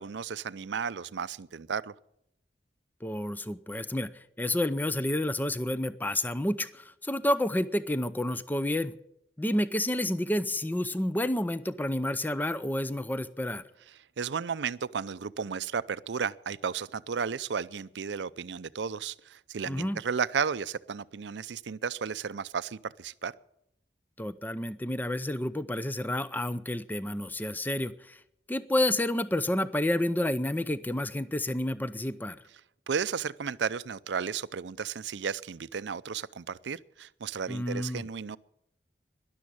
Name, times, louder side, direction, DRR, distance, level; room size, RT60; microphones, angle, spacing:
voice 1, 0.0-1.9 14.2-23.3 32.9-38.4, right 6 dB, 85° right, 0.5 m, -33 dB
voice 2, 3.0-8.9 9.4-13.6 19.7-20.0 24.2-28.2 28.5-32.4 37.5-38.0, left 1 dB, 10° left, 0.6 m, -30 dB
12.5 x 11.5 x 8.6 m
head